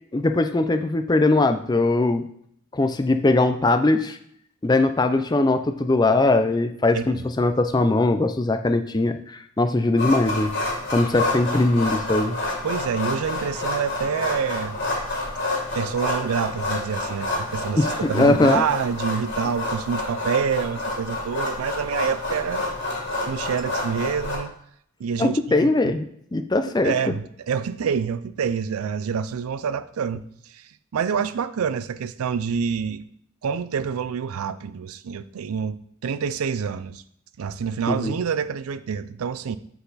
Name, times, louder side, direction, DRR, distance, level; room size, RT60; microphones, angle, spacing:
voice 1, 0.1-2.2 2.7-4.2 4.6-10.5 10.9-12.4 17.8-18.6 25.2-26.1 26.3-26.9 37.9-38.1, left 2 dB, 20° left, 0.4 m, -20 dB
sound 1, 10.0-24.3, left 2 dB, 50° left, 2.0 m, -28 dB
voice 2, 12.6-14.8 15.7-22.6 23.3-24.5 25.0-26.0 26.8-30.2 30.5-33.0 33.4-37.0 37.4-39.6, right 6 dB, 85° right, 0.4 m, -27 dB
7.8 x 4.1 x 4.0 m
head